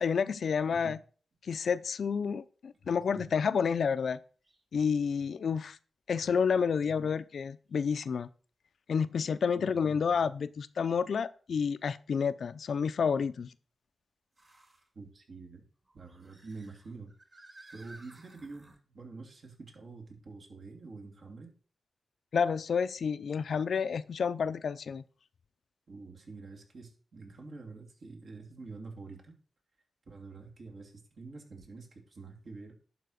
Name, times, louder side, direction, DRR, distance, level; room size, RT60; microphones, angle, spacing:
voice 1, 0.0-1.0 1.5-4.2 4.7-5.8 6.1-8.3 8.9-13.5 22.3-25.0, left 6 dB, 70° left, 14 dB, 0.6 m, -30 dB
voice 2, 2.8-3.3 7.0-7.1 9.5-10.3 14.9-15.6 15.9-17.1 17.7-21.5 25.9-29.3 30.1-32.7, right 3 dB, 60° right, 1 dB, 2.9 m, -47 dB
sound 1, 4.4-4.6 5.3-5.4 7.4-7.5 11.0-11.1 14.3-14.9 15.8-18.8, right 2 dB, 35° right, 2.5 m, -57 dB
11.5 x 4.7 x 6.5 m, 0.40 s
cardioid pair, 90°, 0 cm